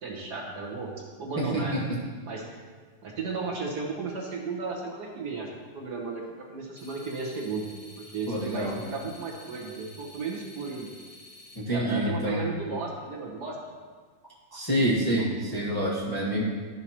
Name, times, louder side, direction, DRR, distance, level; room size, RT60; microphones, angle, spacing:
voice 1, 0.0-0.9 1.2-1.8 2.2-2.4 3.0-6.2 6.5-7.7 8.0-10.9 11.7-13.6, right 4 dB, 60° right, -2 dB, 1.6 m, -34 dB
voice 2, 1.4-1.8 8.3-8.8 11.5-12.5 14.5-16.4, equal, 15° left, -7 dB, 1.3 m, -27 dB
sound 1, 6.8-11.6, left 1 dB, 55° left, 1.7 m, -50 dB
12.5 x 5.6 x 3.0 m, 1.5 s
omnidirectional pair, 2.0 m